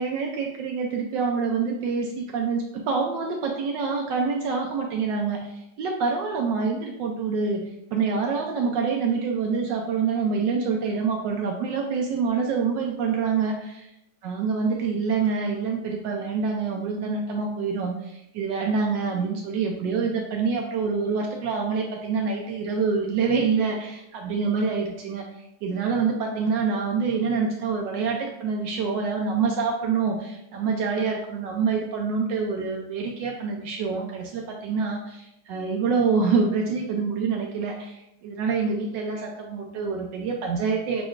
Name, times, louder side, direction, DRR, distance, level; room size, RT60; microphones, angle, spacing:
voice 1, 0.0-13.9 14.2-41.0, right 5 dB, 75° right, 1 dB, 1.2 m, -26 dB
7.0 x 3.0 x 2.4 m, 0.82 s
omnidirectional pair, 2.0 m